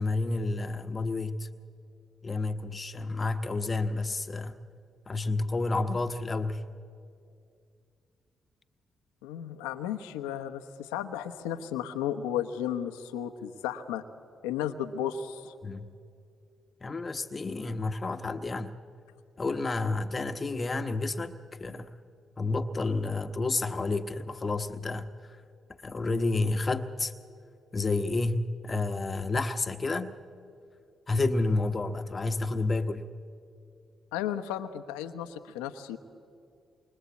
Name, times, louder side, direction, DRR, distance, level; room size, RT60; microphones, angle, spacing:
voice 1, 0.0-1.5 2.2-4.6 5.1-6.6 15.6-15.9 16.8-18.8 19.4-21.9 22.4-25.4 25.8-27.1 27.7-30.2 31.1-33.0, left 3 dB, 40° left, 7 dB, 1.1 m, -30 dB
voice 2, 9.2-14.0 14.4-15.5 34.1-36.0, left 10 dB, 85° left, 8 dB, 1.1 m, -34 dB
27.5 x 24.0 x 8.4 m, 2.4 s
hypercardioid pair, 45°, 0 cm